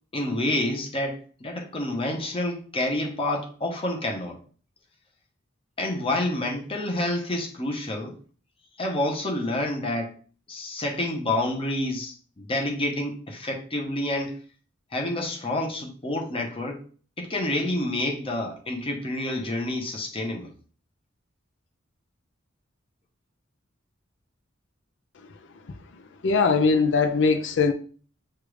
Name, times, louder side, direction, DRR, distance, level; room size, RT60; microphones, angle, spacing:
voice 1, 0.1-4.4 5.8-8.2 8.8-10.1 10.5-14.4 14.9-16.8 17.2-20.5, left 1 dB, 25° left, 1 dB, 0.8 m, -28 dB
voice 2, 26.2-27.7, left 4 dB, 60° left, 8 dB, 0.5 m, -20 dB
6.6 x 2.4 x 3.1 m, 0.41 s
head